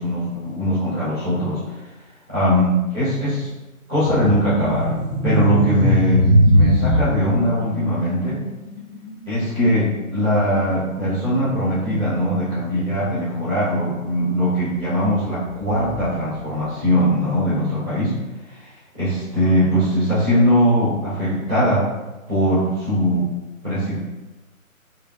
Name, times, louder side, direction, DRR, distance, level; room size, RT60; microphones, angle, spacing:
voice 1, 0.0-1.6 2.3-3.5 3.9-4.9 5.2-8.4 9.3-18.1 18.5-21.8 22.3-23.3 23.6-24.0, equal, 5° right, -19 dB, 0.6 m, -21 dB
sound 1, 4.1-14.0 14.3-14.6 15.3-16.3, equal, 60° left, 1.4 m, -22 dB
4.3 x 3.6 x 2.4 m, 1.1 s
figure-of-eight pair, 140°, 42 cm